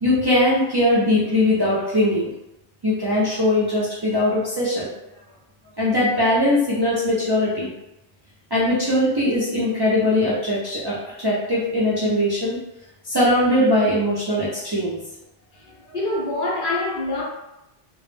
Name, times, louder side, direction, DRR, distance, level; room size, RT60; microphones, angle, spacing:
voice 1, 0.0-2.3 2.8-4.9 5.8-7.7 8.5-12.6 13.0-15.0, left 1 dB, 35° right, -9 dB, 0.4 m, -20 dB
voice 2, 15.6-17.2, left 2 dB, 60° left, -3 dB, 0.7 m, -26 dB
2.1 x 2.0 x 3.1 m, 0.92 s
omnidirectional pair, 1.0 m